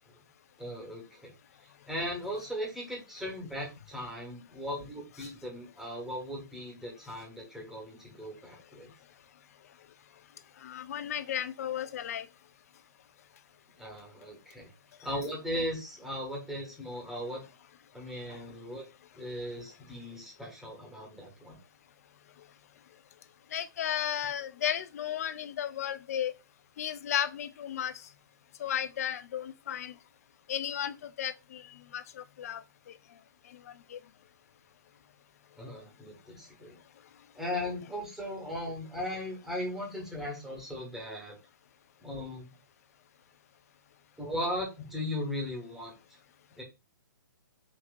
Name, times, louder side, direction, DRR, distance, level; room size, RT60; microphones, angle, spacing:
voice 1, 0.6-1.3 1.9-8.9 13.8-14.7 15.0-17.4 17.9-18.8 19.1-21.6 35.6-36.8 37.3-41.4 42.0-42.5 44.2-46.0 46.6-46.7, left 1 dB, 5° right, 1.3 m, -37 dB
voice 2, 10.6-12.3 18.3-18.4 23.5-26.3 26.8-27.9 28.6-29.9 30.5-32.6 33.9-34.0, left 10 dB, 45° left, 0.4 m, -34 dB
5.2 x 2.8 x 2.4 m
figure-of-eight pair, 125°, 11 cm